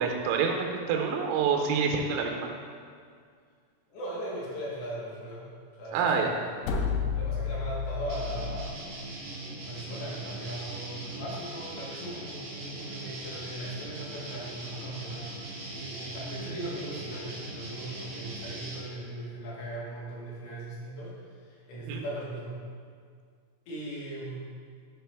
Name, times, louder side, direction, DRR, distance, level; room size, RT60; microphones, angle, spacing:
voice 1, 0.0-2.5 5.9-6.3 21.9-22.0, right 6 dB, 85° right, 2 dB, 2.9 m, -27 dB
voice 2, 3.9-5.5 5.8-6.7 7.2-8.8 9.6-15.3 15.7-21.1 21.4-22.6 23.7-24.5, right 1 dB, 70° left, -6 dB, 3.6 m, -38 dB
sound 1, 6.6-8.7, left 5 dB, 85° left, 2.3 m, -31 dB
sound 2, 8.1-18.8, right 2 dB, 60° right, 1.5 m, -40 dB
9.0 x 5.2 x 3.4 m, 2.1 s
omnidirectional pair, 5.2 m